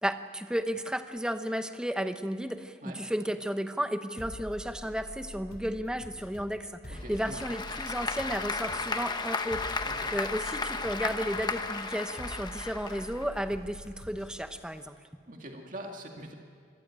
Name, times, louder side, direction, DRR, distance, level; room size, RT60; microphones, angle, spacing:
voice 1, 0.0-9.9 10.1-15.0, equal, 5° right, 8 dB, 0.8 m, -33 dB
sound 1, 4.2-14.8, left 1 dB, 55° left, 2.7 m, -46 dB
Applause / Crowd, 6.9-13.5, left 4 dB, 25° left, 1.0 m, -34 dB
voice 2, 6.9-7.4 9.8-10.1 15.3-16.3, right 1 dB, 45° right, 1 dB, 2.2 m, -43 dB
25.0 x 14.5 x 8.9 m, 2.2 s
head